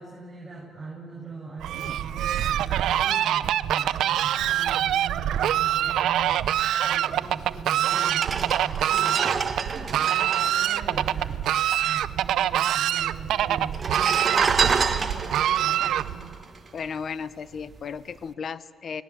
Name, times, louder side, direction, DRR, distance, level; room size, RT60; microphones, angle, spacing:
voice 1, 0.0-9.3 9.6-16.6, right 3 dB, 10° right, -6 dB, 6.7 m, -40 dB
Fowl, 1.6-16.4, right 11 dB, 80° right, 0.6 m, -25 dB
sound 1, 7.4-7.5 8.0-11.7 12.0-12.1 12.3-13.0 13.6-17.1 17.6-17.8, right 5 dB, 40° right, 1.4 m, -28 dB
voice 2, 16.7-19.0, left 6 dB, 55° left, 16 dB, 0.9 m, -34 dB
29.0 x 19.5 x 7.4 m, 2.2 s
cardioid pair, 90°, 0 cm